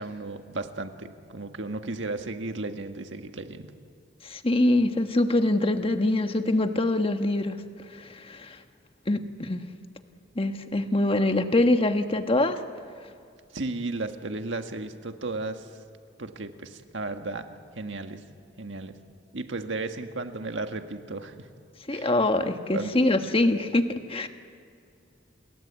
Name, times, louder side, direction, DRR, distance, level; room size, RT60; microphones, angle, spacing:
voice 1, 0.0-3.7 13.5-15.7 16.2-18.2 18.6-19.0 19.3-21.5 21.9-22.1 22.7-22.9, right 2 dB, 75° right, 6 dB, 1.7 m, -34 dB
voice 2, 4.2-7.6 7.9-8.6 9.1-9.6 10.4-12.6 21.9-24.3, left 2 dB, 30° left, 7 dB, 1.4 m, -24 dB
29.0 x 21.5 x 8.4 m, 2.4 s
head